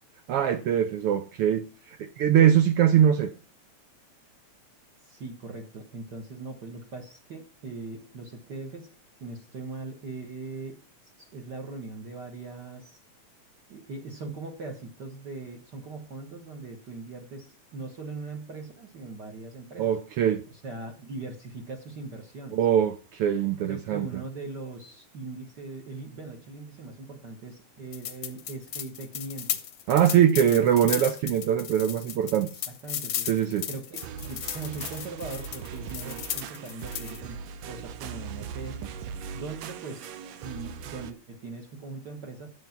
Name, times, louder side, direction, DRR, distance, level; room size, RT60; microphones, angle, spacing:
voice 1, 0.3-1.6 1.9-3.3 19.8-20.4 22.5-24.1 29.9-32.5 33.3-33.6, right 9 dB, 85° right, 10 dB, 1.2 m, -22 dB
voice 2, 5.0-9.0 9.2-10.8 11.2-13.0 13.7-19.9 20.5-22.6 23.6-29.6 30.4-30.9 32.2-32.3 32.7-33.3 33.7-38.9 39.3-42.5, right 3 dB, 45° right, 3 dB, 1.6 m, -40 dB
sound 1, 27.9-37.2, left 10 dB, 65° left, 1.2 m, -35 dB
sound 2, 33.9-41.1, right 7 dB, 70° right, 1.9 m, -40 dB
9.4 x 8.1 x 5.8 m, 0.36 s
omnidirectional pair, 3.4 m